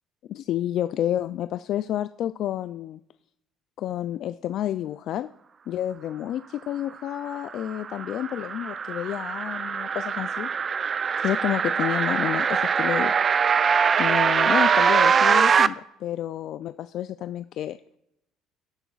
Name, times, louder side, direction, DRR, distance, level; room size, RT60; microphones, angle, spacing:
voice 1, 0.3-3.0 3.8-5.3 5.7-10.5 11.2-13.3 14.0-17.8, left 12 dB, 60° left, 12 dB, 0.3 m, -30 dB
sound 1, 7.3-15.7, right 6 dB, 40° right, 0.4 m, -22 dB
17.0 x 6.9 x 2.4 m, 0.80 s
supercardioid pair, 75°, 0 cm